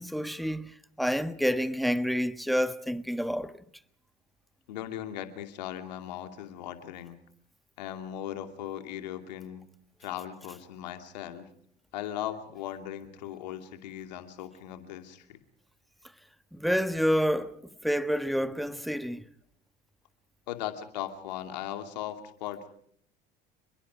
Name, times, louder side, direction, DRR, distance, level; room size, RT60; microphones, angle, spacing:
voice 1, 0.0-3.6 16.5-19.3, equal, ahead, 1.4 m, -29 dB
voice 2, 4.7-7.2 7.8-9.6 10.0-11.5 11.9-15.4 20.5-22.7, left 11 dB, 85° left, 2.6 m, -38 dB
29.0 x 22.0 x 4.8 m
hypercardioid pair, 80°, 21 cm